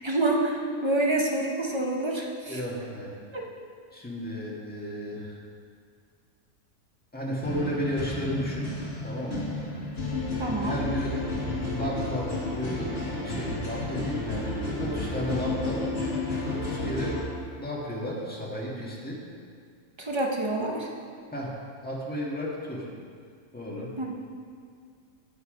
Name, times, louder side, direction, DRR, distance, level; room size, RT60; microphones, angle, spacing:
voice 1, 0.0-2.6 3.3-3.5 10.4-10.8 20.0-20.9 24.0-24.1, right 2 dB, 25° right, 0 dB, 0.8 m, -27 dB
voice 2, 2.5-3.1 3.9-5.4 7.1-8.7 9.0-9.5 10.5-11.2 11.6-12.9 13.2-15.8 16.4-17.2 17.5-19.2 21.3-21.6 21.8-22.9 23.5-23.9, equal, 5° left, -5 dB, 1.5 m, -33 dB
sound 1, 7.4-17.2, left 2 dB, 40° left, 2.1 m, -31 dB
9.1 x 6.8 x 5.1 m, 2.1 s
omnidirectional pair, 1.5 m